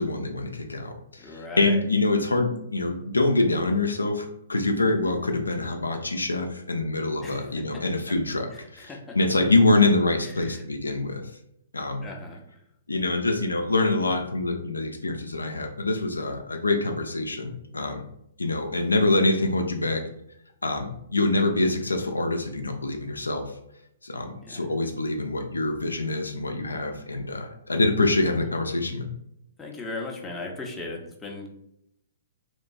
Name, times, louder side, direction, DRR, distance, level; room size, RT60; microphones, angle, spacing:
voice 1, 0.0-11.2 11.7-12.1 12.9-18.0 18.4-20.0 20.6-23.5 24.0-29.1, left 2 dB, 90° left, 4 dB, 0.3 m, -25 dB
voice 2, 1.2-1.8 7.2-7.6 8.5-9.2 10.2-10.6 12.0-12.4 24.4-24.6 29.6-31.5, left 2 dB, 10° left, -1 dB, 0.5 m, -38 dB
2.9 x 2.2 x 2.6 m, 0.77 s
figure-of-eight pair, 120°, 0 cm